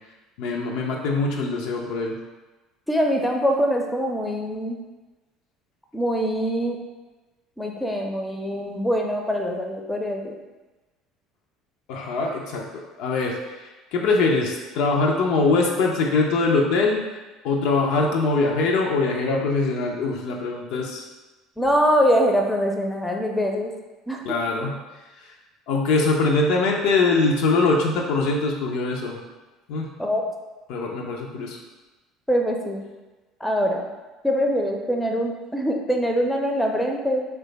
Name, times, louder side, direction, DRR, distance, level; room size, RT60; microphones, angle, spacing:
voice 1, 0.4-2.1 11.9-17.0 17.4-21.0 24.2-24.7 25.7-29.1 29.7-29.9 30.7-31.6, left 3 dB, 65° left, 0 dB, 0.4 m, -22 dB
voice 2, 2.9-4.8 5.9-6.8 7.6-10.4 21.6-23.7 24.1-24.2 30.0-30.2 32.3-32.9 33.4-33.9 34.2-37.3, equal, 10° left, 1 dB, 0.5 m, -23 dB
3.1 x 2.2 x 3.9 m, 1.2 s
figure-of-eight pair, 60°, 0 cm